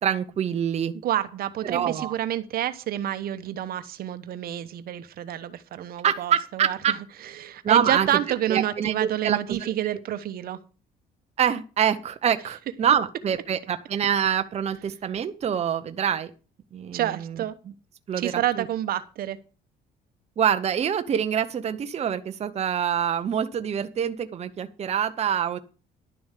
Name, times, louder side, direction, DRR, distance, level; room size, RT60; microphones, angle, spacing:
voice 1, 0.0-0.9 1.7-2.1 6.0-7.0 7.6-8.1 8.5-9.7 11.4-16.3 16.7-17.0 18.1-18.7 20.4-25.6, right 8 dB, 40° right, 9 dB, 0.8 m, -25 dB
voice 2, 1.0-7.0 7.2-10.6 16.9-17.6 18.2-19.4, right 12 dB, 60° right, 12 dB, 1.0 m, -29 dB
11.5 x 7.0 x 6.5 m, 0.35 s
cardioid pair, 110°, 17 cm